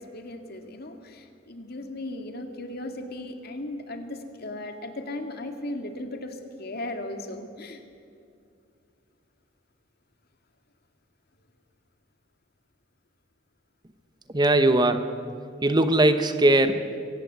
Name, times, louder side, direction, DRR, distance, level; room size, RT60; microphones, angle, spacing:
voice 1, 0.0-7.8, left 1 dB, 55° left, 6 dB, 2.2 m, -37 dB
voice 2, 14.3-15.1 15.6-16.9, right 1 dB, 20° right, 9 dB, 1.0 m, -20 dB
23.5 x 17.5 x 8.1 m, 2.4 s
head